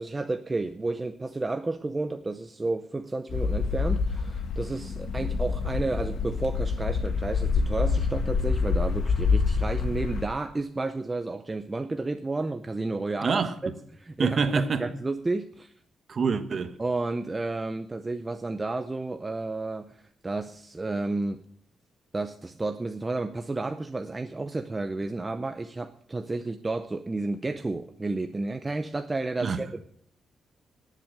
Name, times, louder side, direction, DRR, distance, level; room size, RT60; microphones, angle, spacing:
voice 1, 0.0-15.7 16.8-21.4 22.1-29.8, right 2 dB, 15° right, 0.6 m, -31 dB
sound 1, 3.3-10.3, left 5 dB, 65° left, 1.7 m, -27 dB
voice 2, 13.2-13.5 14.2-14.9 16.1-16.8 29.4-29.6, right 5 dB, 35° right, 1.2 m, -26 dB
18.5 x 7.5 x 6.5 m
wide cardioid pair, 170°, 0 cm